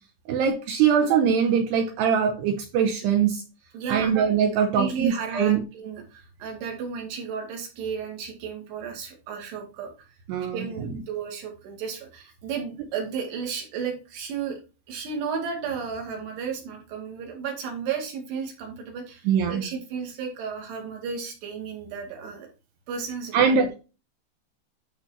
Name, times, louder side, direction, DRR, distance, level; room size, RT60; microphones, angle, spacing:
voice 1, 0.3-3.4 3.9-5.6 10.3-10.6 19.3-19.6 23.3-23.7, right 7 dB, 80° right, 5 dB, 2.5 m, -22 dB
voice 2, 3.7-4.1 4.6-10.2 10.5-14.6 14.9-22.5 22.9-23.8, right 6 dB, 65° right, 1 dB, 4.0 m, -33 dB
12.5 x 4.8 x 2.8 m, 0.31 s
omnidirectional pair, 5.5 m